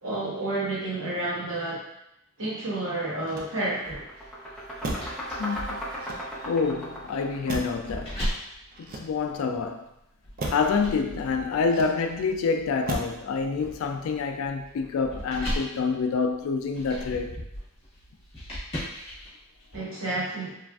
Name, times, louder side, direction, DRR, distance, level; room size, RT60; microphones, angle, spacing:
voice 1, 0.0-1.8 2.4-4.0 19.7-20.5, right 2 dB, 70° right, -6 dB, 1.1 m, -30 dB
sound 1, 2.9-3.1 3.4-8.4, equal, 5° left, 0.7 m, -37 dB
Motor vehicle (road), 3.2-4.0 4.8-5.3 5.9-6.6 7.5-7.9 8.7-9.5 10.4-10.8 11.7-12.3 12.9-13.3 13.6-14.1, right 2 dB, 45° right, 0.4 m, -36 dB
sound 2, 3.8-9.7 10.2-19.8, equal, 30° left, 1.1 m, -38 dB
voice 2, 5.4-5.8 6.4-8.2 8.8-9.9 10.5-17.3, left 5 dB, 75° left, 6 dB, 0.3 m, -27 dB
3.1 x 2.4 x 2.3 m, 0.83 s
head